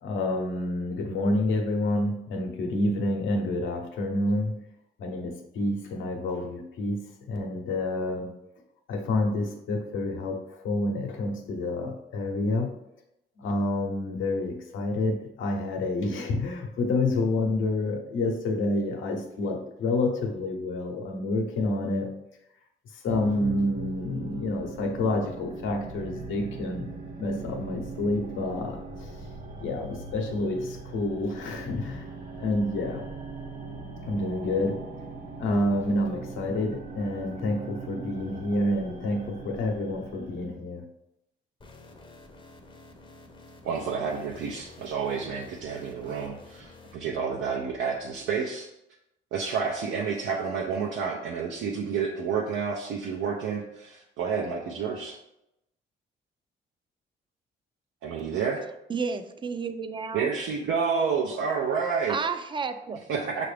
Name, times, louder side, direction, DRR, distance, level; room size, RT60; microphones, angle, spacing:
voice 1, 0.0-4.6 5.0-8.3 8.9-12.7 13.4-22.1 22.9-26.9 27.2-29.1 29.6-32.1 32.4-33.0 34.0-34.8 35.3-40.8, left 2 dB, 80° left, 3 dB, 0.8 m, -28 dB
sound 1, 23.1-40.5, right 4 dB, 40° right, 1.1 m, -40 dB
sound 2, 41.6-47.0, left 2 dB, 25° left, 0.6 m, -50 dB
voice 2, 43.6-48.7 49.3-55.2 58.0-58.6 60.1-62.2 63.1-63.5, right 6 dB, 80° right, -1 dB, 0.5 m, -29 dB
voice 3, 58.9-60.3 62.1-63.0, right 5 dB, 25° right, 9 dB, 0.4 m, -31 dB
5.7 x 2.5 x 3.3 m, 0.86 s
cardioid pair, 90°, 20 cm